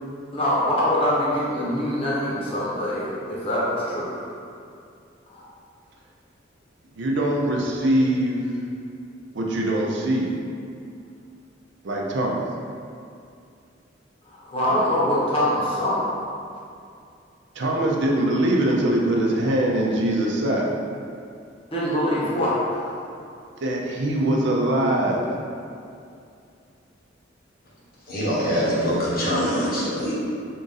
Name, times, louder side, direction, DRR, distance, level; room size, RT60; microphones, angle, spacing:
voice 1, 0.3-4.2 5.3-5.5 14.2-16.1 21.7-22.9, left 1 dB, 30° left, -8 dB, 1.0 m, -24 dB
voice 2, 7.0-8.6 9.3-10.4 11.8-12.4 17.5-20.7 23.6-25.3, right 1 dB, 65° right, -1 dB, 0.5 m, -22 dB
voice 3, 28.1-30.1, equal, 50° left, -7 dB, 1.1 m, -23 dB
3.7 x 2.5 x 3.9 m, 2.5 s
head